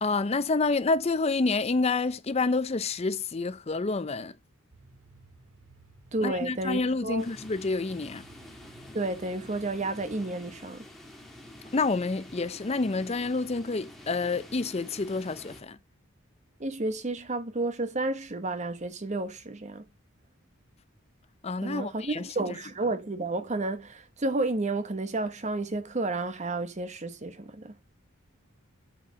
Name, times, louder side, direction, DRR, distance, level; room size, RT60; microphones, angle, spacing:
voice 1, 0.0-4.3 6.2-8.2 11.7-15.8 21.4-22.6, left 3 dB, 30° left, 0.5 m, -28 dB
sound 1, 4.7-10.1, right 3 dB, 70° right, 1.8 m, -56 dB
voice 2, 6.1-7.3 8.9-10.9 16.6-19.8 21.6-27.8, right 2 dB, 35° right, 0.9 m, -31 dB
sound 2, 7.2-15.6, left 1 dB, ahead, 2.0 m, -48 dB
9.1 x 4.6 x 6.2 m
head